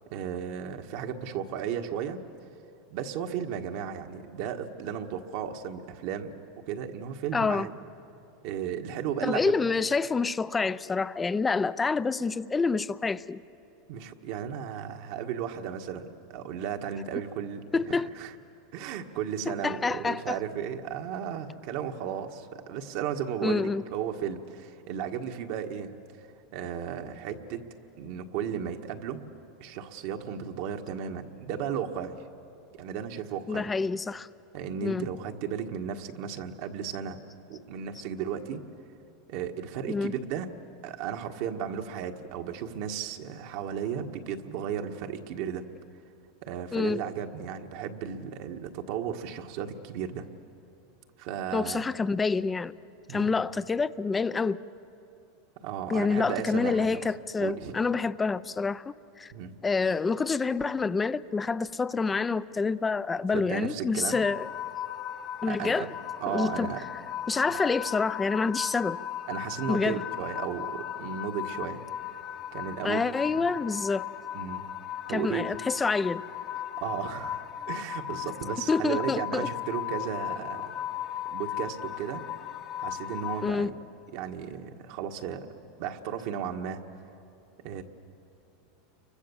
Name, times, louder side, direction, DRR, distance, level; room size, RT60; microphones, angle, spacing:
voice 1, 0.1-2.2 2.9-6.3 6.7-7.7 8.4-9.5 13.9-18.3 18.7-25.9 26.2-26.3 26.5-27.6 28.0-29.2 29.6-32.2 32.8-33.7 34.5-37.2 37.5-38.6 39.3-40.5 40.8-45.6 46.4-50.3 51.2-51.8 53.1-53.3 55.6-57.0 57.4-57.7 59.3-59.6 63.3-64.2 65.5-65.9 66.2-66.8 67.5-67.8 69.3-71.8 72.5-73.5 74.3-74.7 75.1-75.4 76.8-80.8 81.3-82.2 82.8-83.8 84.1-85.5 85.8-86.8 87.6-87.8, right 8 dB, 60° right, 5 dB, 1.6 m, -34 dB
voice 2, 7.3-7.7 9.2-13.4 17.7-18.1 19.5-20.4 23.4-23.8 33.5-34.3 34.8-35.1 39.9-40.1 46.7-47.0 51.5-52.8 53.1-54.6 55.9-59.3 59.6-64.5 65.4-65.9 66.3-66.7 67.3-69.0 69.7-70.0 72.8-74.1 75.1-76.2 78.7-79.5 83.4-83.7, left 4 dB, 15° left, 16 dB, 0.5 m, -27 dB
sound 1, 64.1-83.5, left 11 dB, 40° left, 1.1 m, -37 dB
29.5 x 24.0 x 7.2 m, 2.8 s
supercardioid pair, 130°, 0 cm